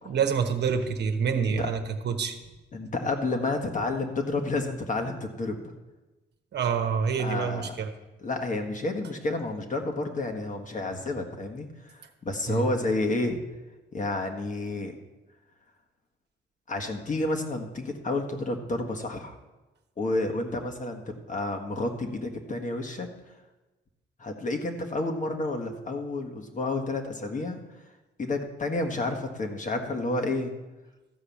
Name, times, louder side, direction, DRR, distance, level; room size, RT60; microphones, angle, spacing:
voice 1, 0.0-2.4 6.5-7.9 12.5-12.7, right 6 dB, 60° right, 6 dB, 1.1 m, -27 dB
voice 2, 2.7-5.6 7.2-7.7 8.2-13.4 13.9-14.9 16.7-19.4 20.0-23.1 24.2-27.6 28.2-30.5, left 2 dB, 40° left, 4 dB, 1.5 m, -30 dB
14.0 x 4.9 x 7.1 m, 1.1 s
cardioid pair, 90°, 20 cm